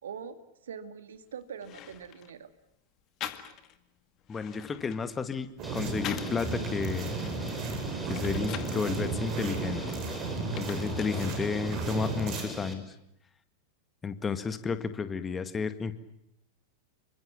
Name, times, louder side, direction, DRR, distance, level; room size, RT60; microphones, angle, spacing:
voice 1, 0.0-2.5, right 7 dB, 65° right, 10 dB, 2.2 m, -43 dB
sound 1, 1.2-1.3 1.6-2.4 3.2-3.8 4.2-6.5 6.9-8.8 9.4-11.5 11.8-12.6, left 11 dB, 35° left, 2.1 m, -44 dB
voice 2, 4.3-5.5 5.7-7.2 8.0-10.0 10.6-12.8 14.0-15.9, left 5 dB, 15° left, 11 dB, 1.9 m, -32 dB
sound 2, 5.6-12.7, equal, ahead, 4.9 m, -39 dB
sound 3, 5.6-12.4, right 4 dB, 35° right, 7.5 m, -35 dB
28.0 x 24.5 x 7.4 m, 0.79 s
figure-of-eight pair, 90°, 0 cm